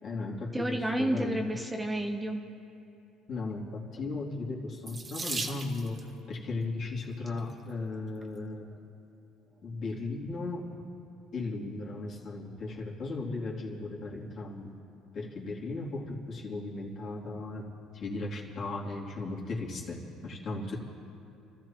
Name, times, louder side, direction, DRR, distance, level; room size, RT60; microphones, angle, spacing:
voice 1, 0.0-1.4 3.3-6.0 6.3-8.7 9.6-10.7 11.3-14.7 15.1-17.6 17.9-20.8, left 3 dB, 50° left, -4 dB, 2.9 m, -36 dB
voice 2, 0.5-2.4, right 1 dB, 10° right, 3 dB, 0.9 m, -30 dB
Water tap faucet / Sink (filling or washing), 4.8-6.1 7.1-7.5 8.2-8.3 8.6-8.8, right 3 dB, 30° right, 1.2 m, -37 dB
30.0 x 14.0 x 3.0 m, 2.8 s
cardioid pair, 105°, 0 cm